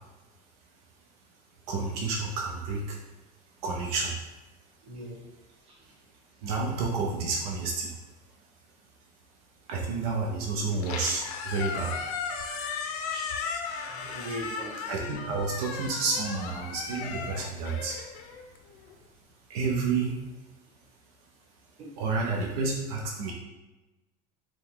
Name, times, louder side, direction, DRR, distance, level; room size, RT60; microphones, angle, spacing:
voice 1, 1.7-3.0 3.6-4.1 6.4-7.9 9.7-11.9 14.1-14.2 14.9-18.0 19.5-20.1 22.0-23.3, right 4 dB, 80° right, -1 dB, 0.8 m, -30 dB
voice 2, 4.8-5.2 5.6-5.9 13.1-13.3 13.9-14.8 21.8-21.9, right 1 dB, 30° right, -5 dB, 1.2 m, -40 dB
Squeak, 10.7-18.9, left 5 dB, 75° left, 0.6 m, -36 dB
4.9 x 2.3 x 3.8 m, 1.1 s
cardioid pair, 170°, 19 cm